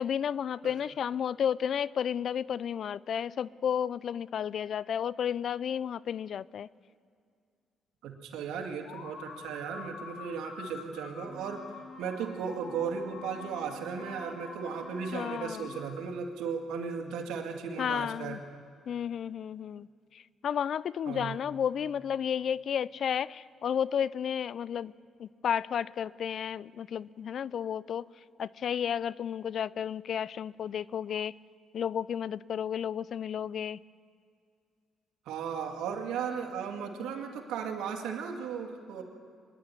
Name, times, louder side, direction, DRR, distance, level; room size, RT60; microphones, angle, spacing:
voice 1, 0.0-6.7 15.1-15.7 17.8-18.4 18.9-19.9 20.1-24.9 25.2-28.1 28.4-31.3 31.7-33.8, left 8 dB, 60° left, 21 dB, 0.4 m, -32 dB
voice 2, 8.0-11.6 12.0-18.4 21.1-21.4 35.3-39.0, right 6 dB, 90° right, 3 dB, 2.2 m, -36 dB
sound 1, 8.8-16.0, left 5 dB, 90° left, 2.3 m, -47 dB
Wind instrument woodwind instrument, 11.1-15.9, left 3 dB, 5° left, 3.6 m, -50 dB
24.5 x 11.0 x 9.8 m, 2.3 s
cardioid pair, 90°, 0 cm